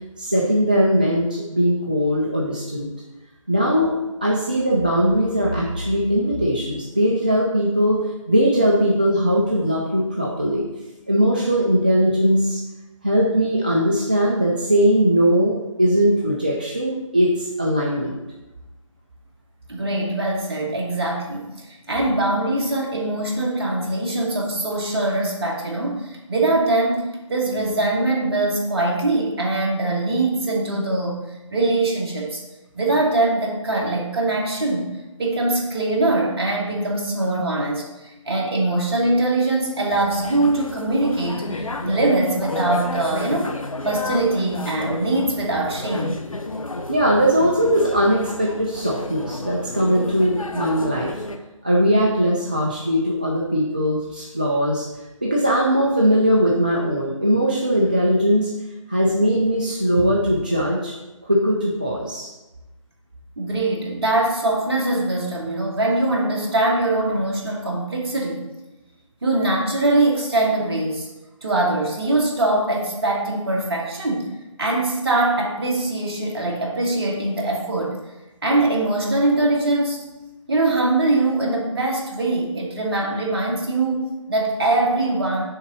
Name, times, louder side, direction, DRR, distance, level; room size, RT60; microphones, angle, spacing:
voice 1, 0.2-2.9 3.5-3.9 4.2-10.7 11.1-12.6 13.0-18.2 46.9-51.2 51.6-54.9 55.2-58.5 58.9-60.9 61.2-62.3, equal, 15° right, -3 dB, 0.3 m, -20 dB
voice 2, 19.7-31.2 31.5-32.4 32.7-34.9 35.2-43.5 43.8-46.2 63.4-68.4 69.2-71.1 71.4-74.3 74.6-77.9 78.4-80.1 80.5-85.4, right 2 dB, 45° right, -2 dB, 1.7 m, -22 dB
sound 1, 39.9-51.4, left 2 dB, 80° left, 0.8 m, -31 dB
6.4 x 3.8 x 6.0 m, 1.0 s
figure-of-eight pair, 155°, 17 cm